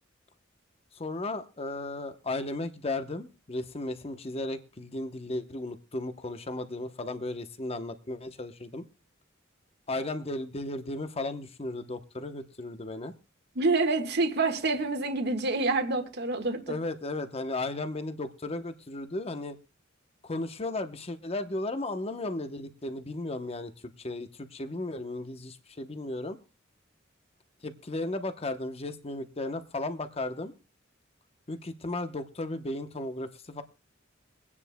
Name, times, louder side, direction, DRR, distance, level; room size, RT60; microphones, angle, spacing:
voice 1, 0.9-8.8 9.9-13.1 16.7-19.6 20.2-23.7 24.0-26.4 27.6-30.5 31.5-33.6, left 2 dB, 30° left, 0.9 m, -35 dB
voice 2, 13.5-16.7, right 3 dB, 55° right, 1.5 m, -27 dB
23.5 x 9.7 x 2.2 m
head